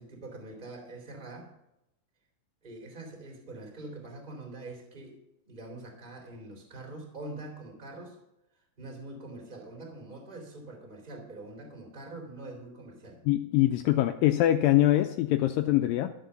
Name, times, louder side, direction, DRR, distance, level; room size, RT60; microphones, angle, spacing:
voice 1, 0.0-1.5 2.6-5.2 5.4-8.2 8.8-13.2, right 2 dB, 15° right, 1 dB, 3.0 m, -44 dB
voice 2, 13.3-16.1, left 14 dB, 80° left, 7 dB, 2.1 m, -24 dB
14.0 x 7.5 x 6.9 m, 0.85 s
omnidirectional pair, 4.4 m